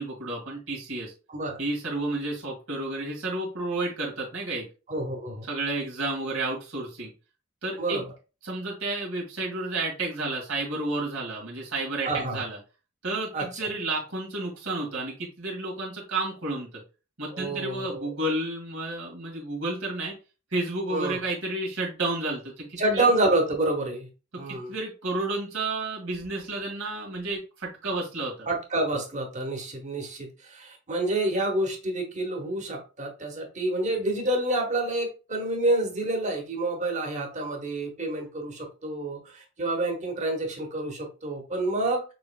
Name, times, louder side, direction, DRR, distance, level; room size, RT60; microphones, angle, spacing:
voice 1, 0.0-1.1 1.6-4.6 5.4-7.1 7.6-8.0 8.4-12.6 13.0-16.7 17.2-20.1 20.5-23.1 24.3-28.5, right 2 dB, 85° right, -3 dB, 2.0 m, -31 dB
voice 2, 1.3-1.6 4.9-5.5 7.8-8.0 12.0-12.4 13.3-13.4 17.3-18.1 20.9-21.2 22.8-24.1 24.4-24.7 28.5-42.0, right 2 dB, 35° right, 3 dB, 1.1 m, -28 dB
6.1 x 3.0 x 2.3 m, 0.32 s
head